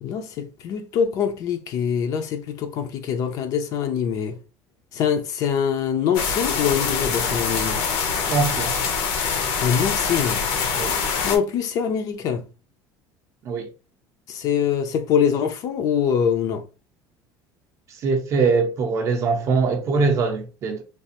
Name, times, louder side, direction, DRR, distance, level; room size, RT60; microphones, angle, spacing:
voice 1, 0.0-4.4 4.9-7.8 9.6-10.4 11.2-12.5 14.3-16.6, left 7 dB, 40° left, 0.4 m, -24 dB
sound 1, 6.1-11.4, left 6 dB, 70° left, 0.7 m, -24 dB
voice 2, 8.3-8.7 10.7-11.0 13.4-13.7 18.0-20.8, right 4 dB, 35° right, 0.5 m, -22 dB
3.2 x 2.4 x 2.8 m
cardioid pair, 170°, 9 cm